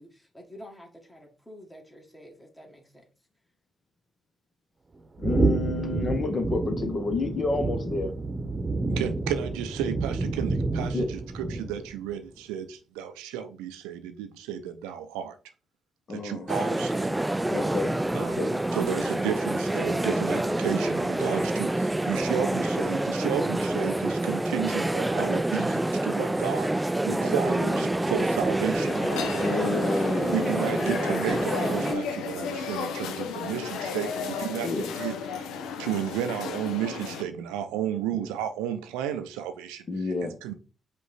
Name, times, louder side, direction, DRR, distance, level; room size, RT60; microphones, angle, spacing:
voice 1, 0.0-3.0, equal, 15° left, 1.5 m, -48 dB
voice 2, 5.2-8.1 10.9-11.1 16.1-16.7 17.5-18.6 20.2-20.6 27.1-28.1 29.4-30.9 34.6-34.9 38.2-38.3 39.9-40.4, left 3 dB, 45° left, 1.1 m, -30 dB
sound 1, 5.2-12.0, right 3 dB, 35° right, 0.9 m, -29 dB
voice 3, 8.9-15.4 16.1-17.2 18.1-29.0 30.3-35.4 35.8-39.9 40.2-40.6, right 10 dB, 80° right, 0.5 m, -33 dB
sound 2, 16.5-31.9, right 1 dB, 15° right, 0.3 m, -27 dB
sound 3, 28.8-37.2, left 5 dB, 75° left, 0.5 m, -34 dB
5.1 x 2.5 x 4.1 m
hypercardioid pair, 40°, 0 cm